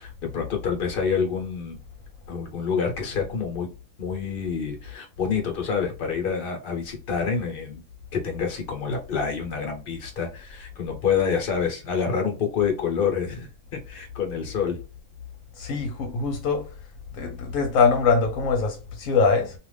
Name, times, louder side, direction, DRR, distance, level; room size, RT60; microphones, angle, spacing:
voice 1, 0.0-1.8 2.3-3.7 4.0-7.8 8.1-14.8, left 6 dB, 45° left, 1.0 m, -27 dB
voice 2, 15.6-16.7 17.1-19.5, left 5 dB, 75° left, 1.1 m, -23 dB
2.5 x 2.4 x 3.2 m
omnidirectional pair, 1.4 m